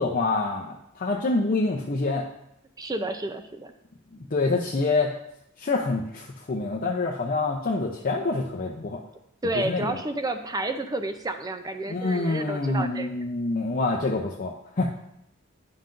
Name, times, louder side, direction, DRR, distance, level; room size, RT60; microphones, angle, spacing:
voice 1, 0.0-2.2 4.3-5.2 5.6-9.0 9.5-10.0 11.9-14.9, left 3 dB, 40° left, -1 dB, 0.6 m, -26 dB
voice 2, 2.8-3.7 9.4-13.1, right 2 dB, 20° right, 7 dB, 0.5 m, -30 dB
10.5 x 5.6 x 2.6 m, 0.79 s
head